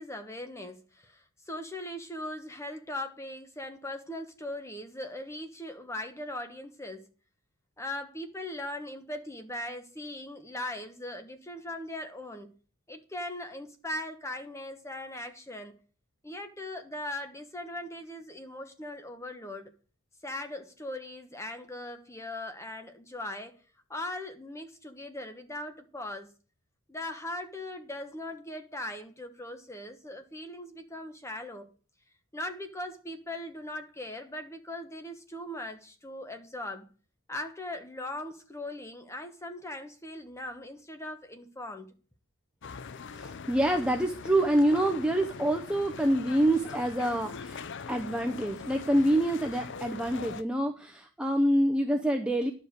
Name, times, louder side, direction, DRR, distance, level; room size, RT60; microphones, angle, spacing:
voice 1, 0.0-7.1 7.8-12.5 12.9-15.7 16.2-19.7 20.2-23.6 23.9-26.3 26.9-31.7 32.3-36.9 37.3-41.9, left 1 dB, 15° left, 1.2 m, -39 dB
sound 1, 42.6-50.4, left 5 dB, 55° left, 0.5 m, -42 dB
voice 2, 43.1-52.5, right 1 dB, 5° right, 0.7 m, -26 dB
11.0 x 5.1 x 8.1 m
head